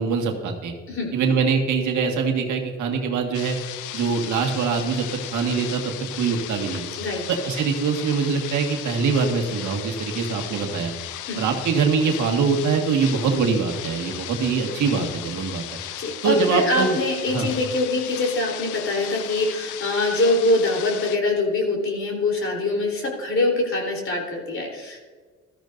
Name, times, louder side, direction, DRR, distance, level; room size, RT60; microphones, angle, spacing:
voice 1, 0.0-0.7 1.1-3.6 3.9-5.0 5.3-6.9 7.4-10.9 11.4-15.8 16.2-17.0 17.3-17.5, right 5 dB, 75° right, 3 dB, 1.8 m, -23 dB
sound 1, 3.3-21.2, left 13 dB, 85° left, 0.6 m, -36 dB
voice 2, 16.0-25.0, left 2 dB, 45° left, 1 dB, 3.7 m, -24 dB
14.5 x 13.5 x 2.6 m, 1.5 s
cardioid pair, 90°, 30 cm